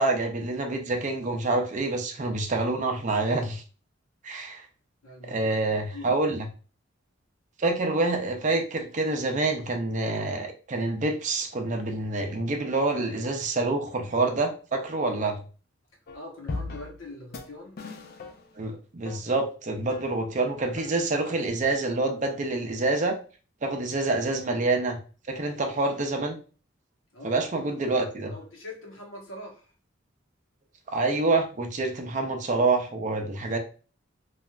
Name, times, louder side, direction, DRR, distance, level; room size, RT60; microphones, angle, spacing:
voice 1, 0.0-3.6 4.2-4.6 5.2-6.5 7.6-15.4 18.6-23.2 23.6-25.0 25.3-26.4 27.2-28.3 30.9-33.6, right 2 dB, 40° right, 0.5 m, -27 dB
voice 2, 5.0-5.5 5.9-6.1 16.1-17.8 27.1-27.4 28.3-29.7, left 2 dB, 85° left, 0.9 m, -42 dB
sound 1, 16.1-16.2 16.5-17.1 17.3-17.5 17.8-18.6 19.1-19.2 19.9-20.0 20.8-20.9 21.6-21.7, left 3 dB, 50° left, 0.4 m, -37 dB
3.1 x 2.4 x 2.2 m
head